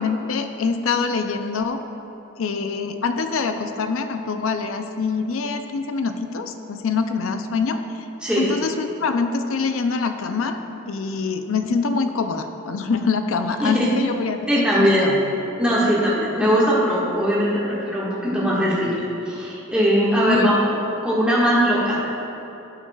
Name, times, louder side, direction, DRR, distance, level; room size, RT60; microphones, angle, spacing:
voice 1, 0.0-1.8 2.4-7.8 8.4-10.6 10.9-15.2 20.3-20.6, left 4 dB, 70° left, 7 dB, 0.5 m, -24 dB
voice 2, 8.2-8.5 13.6-13.9 14.5-15.1 15.6-19.0 19.3-20.6 21.0-22.1, equal, 5° right, -8 dB, 1.6 m, -20 dB
16.0 x 5.6 x 2.4 m, 2.9 s
head